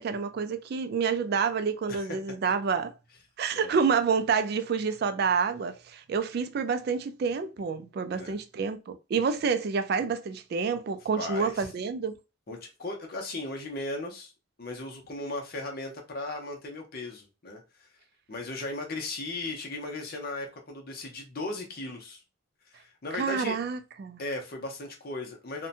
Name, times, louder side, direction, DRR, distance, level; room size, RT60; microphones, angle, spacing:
voice 1, 0.0-2.9 3.4-12.1 23.1-24.2, right 5 dB, 50° right, 0.3 m, -28 dB
voice 2, 11.2-11.7 12.5-14.3 14.6-17.9 18.3-22.2 22.7-23.6 24.2-25.7, left 2 dB, 50° left, 0.7 m, -37 dB
2.7 x 2.2 x 2.5 m
head